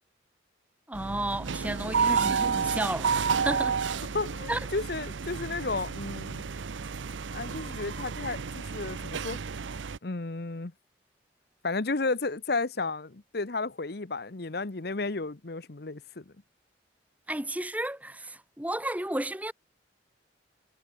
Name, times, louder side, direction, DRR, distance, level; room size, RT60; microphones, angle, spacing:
voice 1, 0.9-3.8 4.5-4.6 17.3-19.5, right 1 dB, 10° right, 1.5 m, -32 dB
sound 1, 0.9-10.0, right 5 dB, 85° right, 0.7 m, -31 dB
voice 2, 4.1-6.5 7.3-9.4 10.0-10.7 11.6-16.3, left 3 dB, 55° left, 1.0 m, -33 dB
head